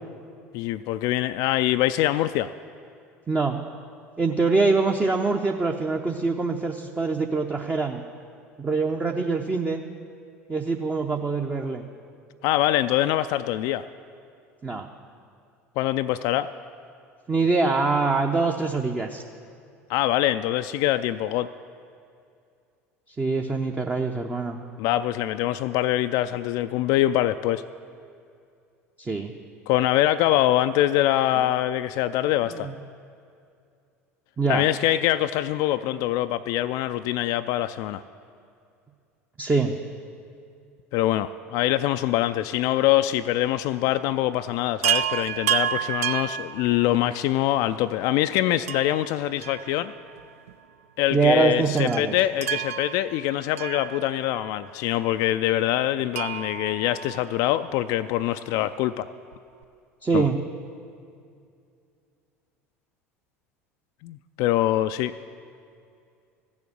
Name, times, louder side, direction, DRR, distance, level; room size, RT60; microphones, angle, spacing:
voice 1, 0.5-2.5 12.4-13.9 15.8-16.5 19.9-21.5 24.8-27.6 29.7-32.7 34.5-38.0 40.9-49.9 51.0-59.1 60.1-60.3 64.0-65.1, left 14 dB, 50° left, 11 dB, 0.3 m, -24 dB
voice 2, 3.3-3.6 4.2-8.0 8.6-9.8 10.5-11.9 14.6-14.9 17.3-19.2 23.2-24.6 29.0-29.3 32.4-32.7 34.4-34.7 39.4-39.8 51.1-52.1 60.0-60.4, right 4 dB, 20° right, 3 dB, 0.7 m, -24 dB
Chime, 44.8-47.3 48.7-50.2 50.5-50.6 51.8-54.5 56.1-57.8 59.3-59.4 59.6-59.7, right 11 dB, 70° right, 0.4 m, -30 dB
15.0 x 7.1 x 7.9 m, 2.4 s
figure-of-eight pair, 70°, 8 cm